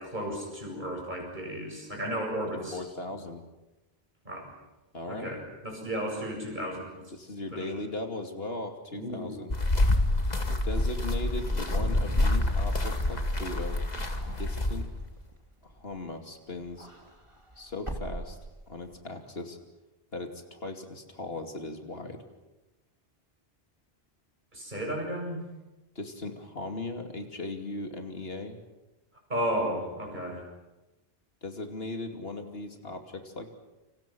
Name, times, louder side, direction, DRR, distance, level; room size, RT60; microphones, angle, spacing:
voice 1, 0.0-2.8 4.2-4.5 5.1-7.0 7.5-7.7 8.9-9.4 24.5-25.4 29.3-30.4, right 1 dB, 50° right, 1 dB, 7.9 m, -34 dB
voice 2, 2.7-3.4 4.9-5.4 7.1-9.5 10.6-13.8 14.2-14.9 15.6-16.9 17.6-18.4 18.7-19.6 20.1-22.2 25.9-28.6 31.4-33.6, left 2 dB, 75° left, 4 dB, 2.9 m, -38 dB
sound 1, 9.5-15.1, left 1 dB, 45° left, 2.3 m, -27 dB
Wind / Car, 10.4-16.2 16.5-19.0, right 1 dB, 30° right, 3.1 m, -43 dB
29.0 x 27.0 x 6.2 m, 1.0 s
omnidirectional pair, 1.0 m